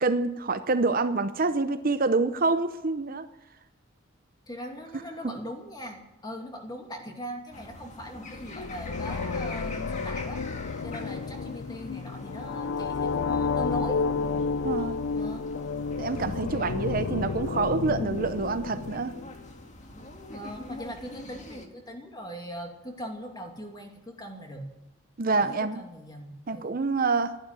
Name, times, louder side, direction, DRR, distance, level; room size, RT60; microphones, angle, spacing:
voice 1, 0.0-3.3 5.2-5.3 14.6-15.0 16.0-19.1 25.2-25.8 26.5-27.4, right 3 dB, 50° right, 10 dB, 0.7 m, -27 dB
voice 2, 4.5-10.4 10.8-14.0 15.1-15.5 20.3-24.7 25.3-26.7, equal, 20° left, 2 dB, 2.6 m, -40 dB
sound 1, 7.5-21.7, left 2 dB, 40° left, 1.8 m, -45 dB
sound 2, 8.2-19.5, left 4 dB, 80° left, 0.5 m, -31 dB
13.0 x 11.5 x 9.7 m, 0.96 s
head